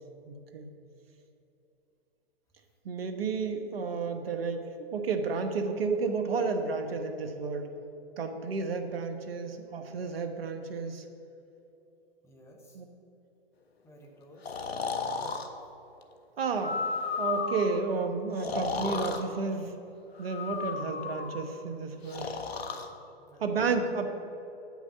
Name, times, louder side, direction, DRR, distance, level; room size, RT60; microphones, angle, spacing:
voice 1, 0.3-0.7 2.8-7.7 8.2-11.0 12.7-12.8 16.4-16.8 17.2-19.7 20.2-22.3 23.4-24.1, right 4 dB, 65° right, 6 dB, 1.2 m, -32 dB
voice 2, 12.2-12.8 13.8-14.6 23.2-23.9, equal, 10° left, 0 dB, 1.3 m, -55 dB
Breathing, 14.5-15.5 16.5-17.8 18.4-19.2 20.2-21.4 22.1-22.9, left 5 dB, 75° left, 1.0 m, -33 dB
8.4 x 6.2 x 6.9 m, 2.9 s
hypercardioid pair, 125°, 31 cm